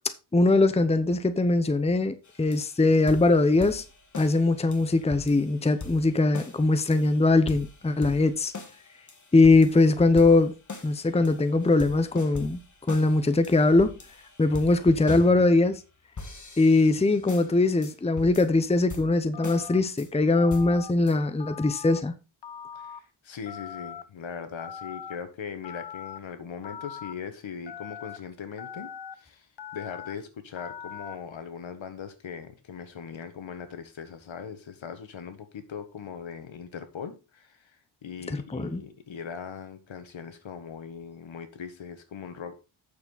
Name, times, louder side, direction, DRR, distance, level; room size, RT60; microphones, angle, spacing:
voice 1, 0.3-3.8 4.2-8.5 9.3-10.5 10.8-12.6 12.9-13.9 14.4-15.8 16.6-22.1 38.3-38.8, left 2 dB, 15° left, 0.7 m, -21 dB
sound 1, 2.3-15.9 16.2-17.5 17.8-17.9 18.2-18.6 18.9-19.6 20.0-20.1 20.5-21.1, left 3 dB, 40° left, 1.7 m, -41 dB
Telephone, 19.3-19.8 20.4-20.9 21.4-22.0 22.4-23.0 23.5-24.0 24.6-25.2 25.6-26.2 26.6-27.1 27.7-28.2 28.6-29.1 29.6-30.1 30.6-31.1, left 8 dB, 60° left, 1.0 m, -41 dB
voice 2, 22.7-29.5 29.7-37.8 38.0-42.5, left 6 dB, 75° left, 1.6 m, -40 dB
8.5 x 6.9 x 4.0 m
wide cardioid pair, 120°, 46 cm